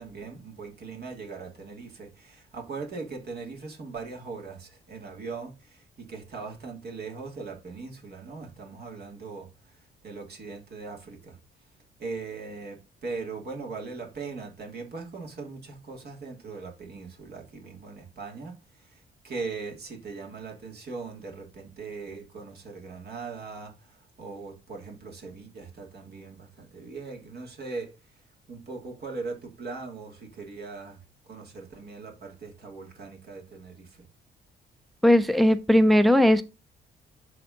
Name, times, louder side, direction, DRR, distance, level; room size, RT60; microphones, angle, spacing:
voice 1, 0.0-11.4 12.0-28.2 28.5-31.0 31.3-34.0, right 4 dB, 55° right, 2.9 m, -40 dB
voice 2, 35.0-36.4, left 1 dB, ahead, 0.5 m, -18 dB
10.5 x 3.6 x 3.8 m
cardioid pair, 90°, 20 cm